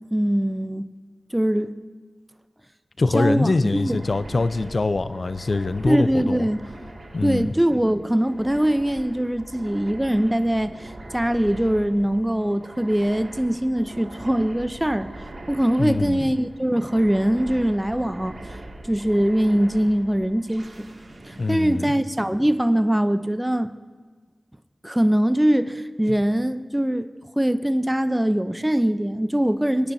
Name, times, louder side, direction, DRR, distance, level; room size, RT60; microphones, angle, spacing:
voice 1, 0.1-0.9 1.3-1.7 3.1-4.0 5.8-6.7 7.2-15.1 15.5-18.4 18.8-20.9 21.2-23.7 24.8-27.1 27.4-29.9, right 1 dB, 10° right, 11 dB, 0.6 m, -22 dB
voice 2, 3.0-6.5 7.1-7.5 15.8-16.3 21.4-22.0 26.1-26.2, left 3 dB, 60° left, 12 dB, 0.5 m, -24 dB
sound 1, 3.7-22.6, right 2 dB, 65° right, 2.2 m, -42 dB
20.5 x 10.0 x 2.7 m, 1.5 s
cardioid pair, 50°, 0 cm